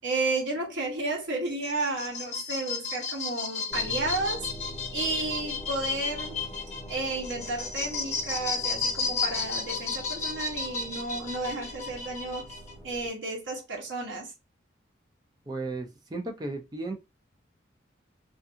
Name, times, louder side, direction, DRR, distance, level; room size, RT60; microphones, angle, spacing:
voice 1, 0.0-4.5 4.9-6.5 6.9-12.5 12.8-14.3, right 2 dB, 70° right, 1.0 m, -32 dB
sound 1, 1.5-12.7, left 5 dB, 35° left, 0.8 m, -33 dB
sound 2, 3.7-13.1, right 1 dB, ahead, 1.5 m, -44 dB
voice 2, 15.5-16.9, right 2 dB, 20° right, 0.5 m, -34 dB
2.5 x 2.4 x 2.6 m
head